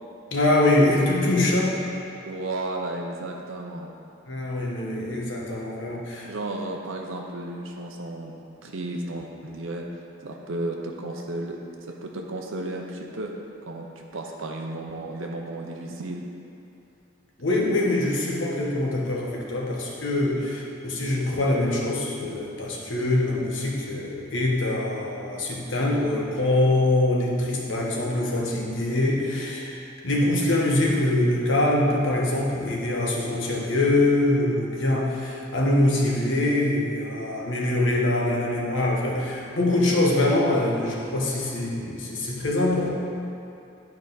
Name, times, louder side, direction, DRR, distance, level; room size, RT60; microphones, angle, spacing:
voice 1, 0.3-1.8 4.3-6.3 17.4-42.9, left 1 dB, 70° left, -3 dB, 1.2 m, -24 dB
voice 2, 2.2-3.9 6.3-8.3 8.6-9.9 10.2-13.3 13.7-16.2, right 2 dB, 80° right, 1 dB, 0.7 m, -33 dB
9.9 x 4.8 x 4.0 m, 2.7 s
head